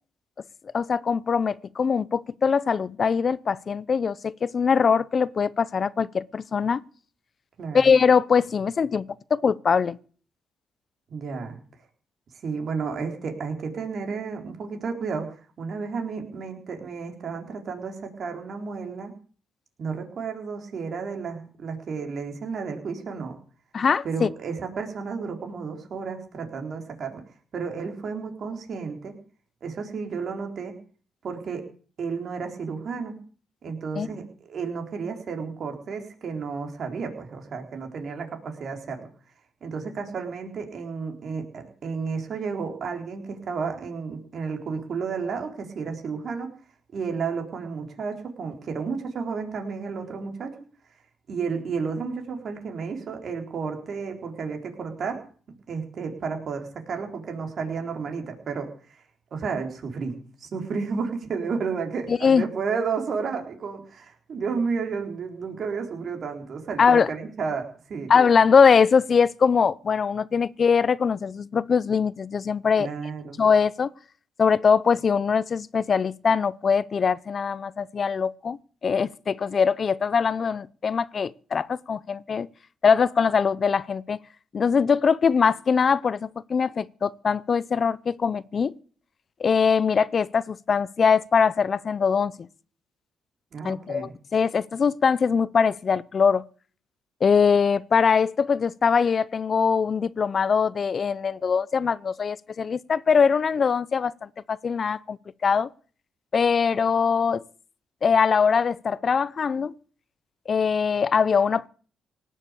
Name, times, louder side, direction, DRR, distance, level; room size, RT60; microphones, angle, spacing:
voice 1, 0.7-6.8 7.7-10.0 23.7-24.3 34.0-34.1 62.1-62.4 66.8-67.1 68.1-72.9 73.4-73.9 74.4-78.6 78.8-82.5 82.8-84.2 84.5-88.7 89.4-92.5 93.6-96.4 97.2-105.2 105.4-105.7 106.3-107.4 108.0-109.7 110.5-111.7, left 6 dB, 45° left, 0.6 m, -22 dB
voice 2, 7.6-7.9 11.1-11.6 12.4-19.1 19.8-23.4 24.0-27.2 27.5-29.1 29.6-30.7 31.2-31.6 32.0-33.2 33.6-39.1 39.6-46.5 46.9-50.6 51.3-55.3 55.7-59.0 59.3-68.1 72.8-73.4 93.5-94.1, right 5 dB, 55° right, 3.9 m, -32 dB
18.0 x 7.4 x 8.3 m
cardioid pair, 90°, 0 cm